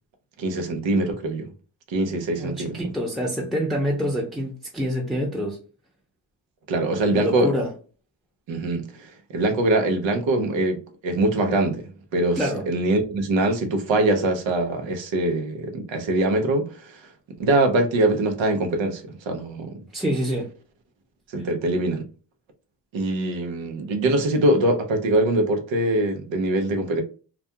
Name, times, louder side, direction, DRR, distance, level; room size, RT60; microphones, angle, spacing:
voice 1, 0.4-1.5 1.9-2.8 6.7-7.5 8.5-10.8 11.0-17.1 17.4-19.8 21.3-22.1 22.9-27.0, right 2 dB, 85° right, 0.7 m, -23 dB
voice 2, 2.4-5.6 7.1-7.7 12.4-12.6 19.9-20.5, equal, ahead, 0.6 m, -26 dB
2.3 x 2.3 x 2.7 m
supercardioid pair, 50°, 44 cm